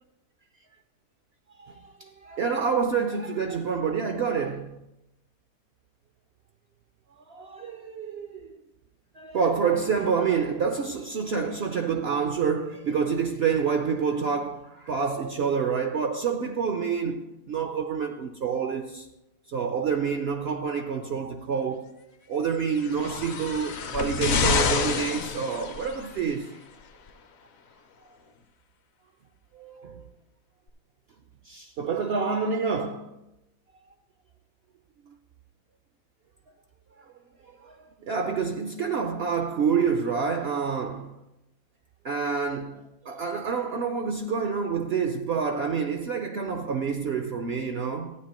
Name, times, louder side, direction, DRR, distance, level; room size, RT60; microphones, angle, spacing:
voice 1, 1.6-4.8 7.2-8.6 9.1-19.1 19.5-21.9 22.3-26.6 29.5-30.1 31.4-33.2 37.0-37.1 37.5-41.2 42.0-48.2, right 6 dB, 60° right, 0.7 m, -28 dB
sound 1, 22.8-26.1 27.1-27.2, left 5 dB, 55° left, 0.8 m, -27 dB
12.5 x 9.2 x 3.0 m
omnidirectional pair, 1.5 m